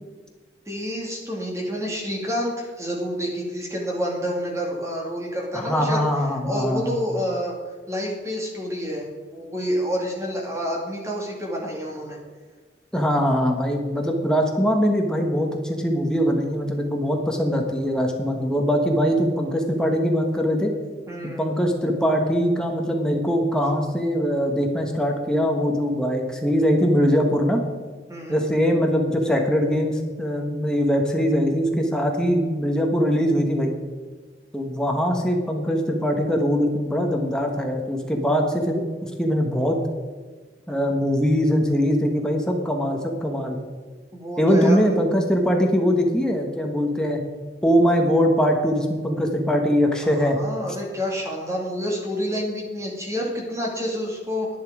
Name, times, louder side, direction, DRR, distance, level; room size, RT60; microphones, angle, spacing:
voice 1, 0.7-6.0 6.4-7.5 7.9-9.1 9.3-12.2 21.1-21.5 28.1-28.5 44.1-44.9 50.0-54.5, equal, 15° right, -1 dB, 2.1 m, -28 dB
voice 2, 5.5-7.0 12.9-20.7 21.4-27.6 28.3-33.7 34.5-39.8 40.7-43.6 44.4-47.2 47.6-50.4, equal, 5° left, 1 dB, 1.3 m, -22 dB
10.5 x 10.0 x 4.9 m, 1.4 s
head